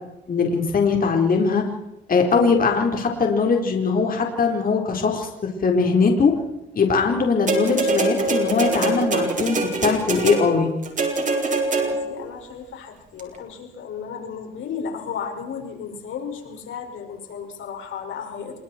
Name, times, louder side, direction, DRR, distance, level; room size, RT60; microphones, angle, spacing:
voice 1, 0.3-1.6 2.1-5.3 5.6-6.3 6.7-10.7, left 5 dB, 45° left, 2 dB, 4.4 m, -20 dB
sound 1, 7.5-12.2 13.2-13.3, right 3 dB, 40° right, 5.5 m, -24 dB
voice 2, 11.8-18.6, left 6 dB, 80° left, 3 dB, 6.0 m, -34 dB
27.5 x 23.5 x 4.6 m, 0.93 s
cardioid pair, 90°, 20 cm